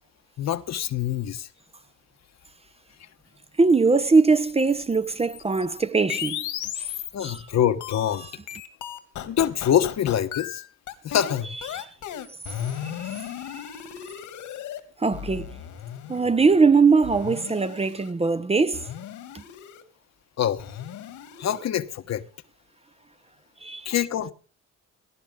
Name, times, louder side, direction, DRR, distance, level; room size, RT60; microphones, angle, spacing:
voice 1, 0.4-1.5 7.1-8.3 9.3-10.6 11.0-11.6 20.4-20.8 21.4-22.2 23.8-24.3, left 10 dB, 60° left, 1.2 m, -25 dB
voice 2, 3.6-6.4 6.8-6.9 7.2-7.5 11.7-11.9 12.8-13.2 13.5-13.6 15.0-15.5 16.1-18.9 19.3-19.4 23.6-23.9, right 4 dB, 20° right, 0.7 m, -21 dB
sound 1, 4.3-7.4 7.8-14.8 15.1-16.2 17.0-18.1 18.7-19.8 20.6-21.7, left 10 dB, 85° left, 2.3 m, -36 dB
18.5 x 11.0 x 3.7 m
cardioid pair, 90°, 30 cm